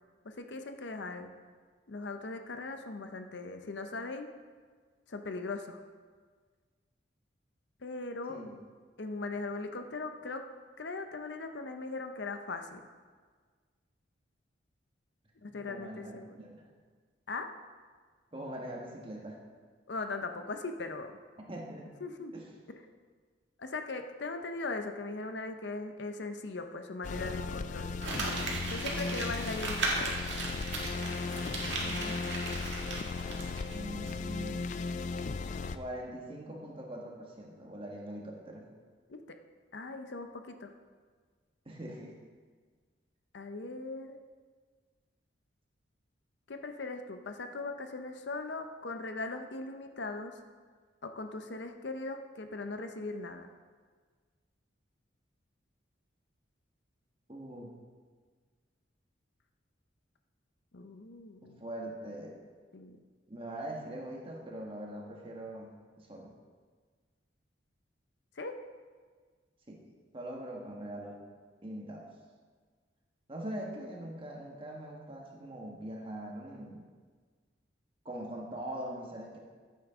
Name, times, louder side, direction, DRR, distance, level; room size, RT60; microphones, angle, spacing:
voice 1, 0.2-1.3 1.9-4.3 5.1-5.8 7.8-8.4 9.0-10.4 10.8-12.8 15.4-16.4 17.3-17.5 19.9-21.1 22.0-22.3 22.7-22.8 23.6-28.0 28.7-30.2 39.1-39.4 39.7-40.7 43.3-44.2 46.5-50.3 51.0-53.5 60.7-61.6 62.7-63.0 68.4-68.5, left 3 dB, 65° left, 6 dB, 0.7 m, -39 dB
voice 2, 15.5-16.6 18.3-19.5 21.4-21.9 22.3-22.5 31.7-32.4 33.0-33.2 33.7-34.6 35.7-38.7 41.6-42.1 57.3-57.8 61.6-62.3 63.3-66.3 69.7-69.8 70.1-71.2 71.6-72.1 73.3-76.8 78.0-79.4, right 1 dB, 30° right, -1 dB, 1.4 m, -42 dB
sound 1, 27.0-35.8, left 4 dB, 40° left, 0.3 m, -36 dB
Crumpling crinkling, 28.0-33.7 34.1-34.2, right 3 dB, 70° right, 1.9 m, -36 dB
14.0 x 8.4 x 3.7 m, 1.6 s
head